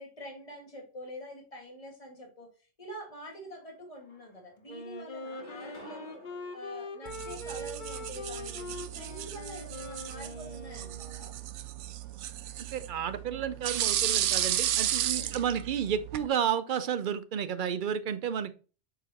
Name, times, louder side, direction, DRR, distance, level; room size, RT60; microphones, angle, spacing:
voice 1, 0.0-6.2 6.5-11.3 15.1-15.4, equal, 30° left, 0 dB, 2.0 m, -46 dB
sound 1, 3.5-3.6 4.0-4.7 5.2-7.8, left 1 dB, 75° left, 3.0 m, -52 dB
Wind instrument woodwind instrument, 4.7-11.3, left 1 dB, 45° left, 1.0 m, -42 dB
sound 2, 7.1-16.3, right 12 dB, 80° right, 0.9 m, -34 dB
voice 2, 12.7-18.5, right 8 dB, 55° right, 13 dB, 0.6 m, -31 dB
8.0 x 4.8 x 2.9 m, 0.35 s
omnidirectional pair, 1.2 m